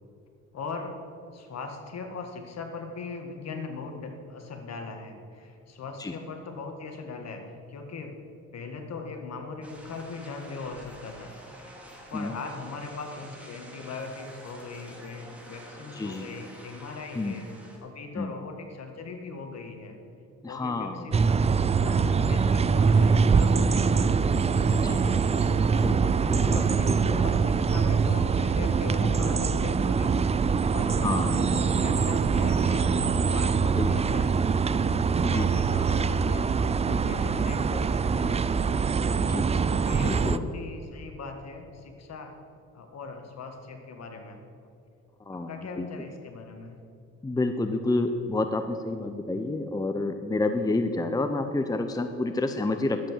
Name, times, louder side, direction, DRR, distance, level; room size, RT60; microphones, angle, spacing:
voice 1, 0.5-1.0 1.3-8.2 8.5-11.8 12.1-17.5 17.8-20.0 20.5-21.4 21.8-24.1 26.5-34.5 35.3-38.4 39.7-42.4 42.7-44.4 45.3-46.8, left 4 dB, 60° left, 5 dB, 1.7 m, -40 dB
sound 1, 9.6-17.8, equal, 5° right, 2.6 m, -48 dB
voice 2, 15.9-16.3 17.2-17.3 18.1-18.3 20.4-21.1 24.8-25.0 25.8-27.2 29.0-29.3 31.0-31.4 33.8-33.9 35.2-35.5 39.2-39.5 40.0-40.5 45.2-45.9 47.2-53.1, left 2 dB, 10° left, 7 dB, 0.7 m, -29 dB
sound 2, 21.1-40.4, right 5 dB, 20° right, 0.4 m, -24 dB
11.5 x 8.1 x 7.5 m, 2.5 s
cardioid pair, 90°, 30 cm